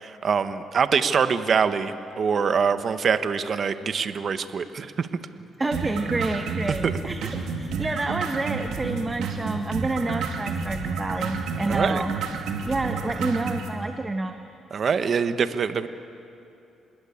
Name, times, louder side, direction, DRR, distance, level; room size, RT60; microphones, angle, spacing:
voice 1, 0.0-5.1 6.8-6.9 11.7-12.0 14.7-15.9, right 6 dB, 50° right, 10 dB, 1.2 m, -24 dB
voice 2, 5.6-12.1 12.6-14.4, right 2 dB, 20° right, 6 dB, 1.2 m, -28 dB
sound 1, 5.7-13.7, right 5 dB, 85° right, 2.6 m, -30 dB
27.0 x 20.5 x 8.7 m, 2.8 s
cardioid pair, 90°, 0 cm